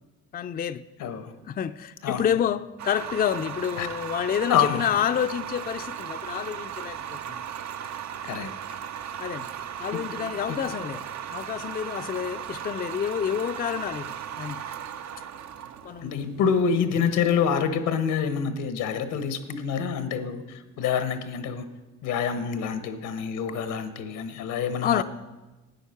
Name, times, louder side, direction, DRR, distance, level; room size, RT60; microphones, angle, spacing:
voice 1, 0.3-0.8 1.5-7.4 9.2-9.5 9.8-14.7 15.8-16.4 24.8-25.0, left 9 dB, 30° left, 0.4 m, -29 dB
voice 2, 1.0-1.3 2.0-2.2 3.8-3.9 4.5-4.8 8.3-8.5 10.5-10.6 16.0-21.7 22.0-25.0, left 7 dB, 90° left, 1.1 m, -26 dB
sound 1, 2.8-17.7, right 9 dB, 65° right, 0.7 m, -37 dB
13.0 x 9.2 x 5.8 m
cardioid pair, 90°, 30 cm